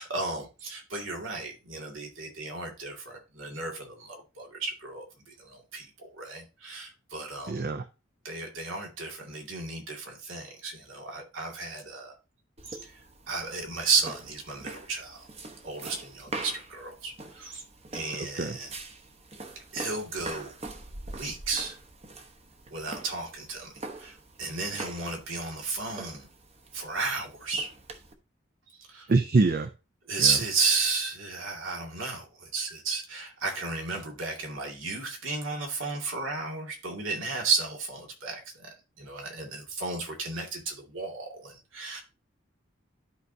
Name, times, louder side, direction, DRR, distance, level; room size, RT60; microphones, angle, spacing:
voice 1, 0.0-5.0 5.4-7.7 8.2-12.1 12.7-12.9 13.3-15.3 15.6-17.6 17.9-18.8 19.7-20.5 21.1-21.7 22.7-23.7 24.0-26.3 26.7-27.7 28.8-29.1 30.1-42.0, right 4 dB, 80° right, 2.3 m, -33 dB
voice 2, 7.5-7.9 18.1-18.6 29.1-29.7 30.2-30.4, right 3 dB, 45° right, 0.5 m, -25 dB
sound 1, 12.6-28.1, right 2 dB, 30° right, 0.9 m, -44 dB
12.5 x 4.6 x 2.7 m
head